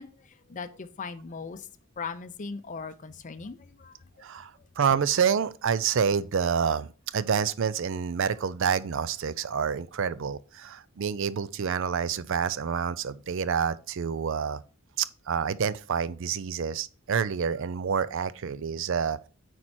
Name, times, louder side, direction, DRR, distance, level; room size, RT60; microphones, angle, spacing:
voice 1, 0.0-1.7 2.0-4.2, left 5 dB, 35° left, 0.5 m, -39 dB
voice 2, 4.8-14.6 15.0-19.2, right 7 dB, 65° right, 0.4 m, -28 dB
8.9 x 4.4 x 4.2 m
head